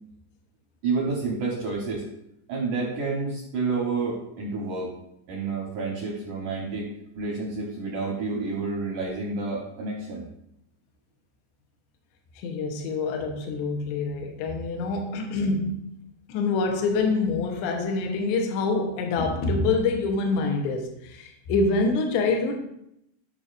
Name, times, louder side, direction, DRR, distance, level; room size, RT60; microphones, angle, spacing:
voice 1, 0.8-2.0 2.5-4.9 5.3-6.9 7.1-10.3, right 4 dB, 70° right, -2 dB, 1.9 m, -29 dB
voice 2, 12.4-15.8 16.3-22.6, left 3 dB, 75° left, 3 dB, 3.0 m, -26 dB
13.5 x 5.8 x 2.6 m, 0.78 s
omnidirectional pair, 5.4 m